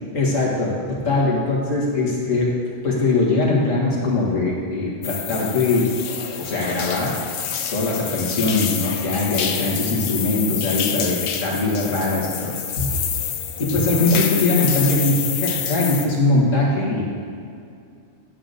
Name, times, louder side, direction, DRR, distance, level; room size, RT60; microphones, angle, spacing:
voice 1, 0.1-2.6 2.8-5.9 6.4-7.2 7.7-13.0 13.6-17.0, left 2 dB, 85° left, -4 dB, 2.0 m, -21 dB
sound 1, 5.0-16.1, left 8 dB, 65° left, 0.8 m, -27 dB
9.8 x 4.0 x 6.5 m, 2.4 s
omnidirectional pair, 1.3 m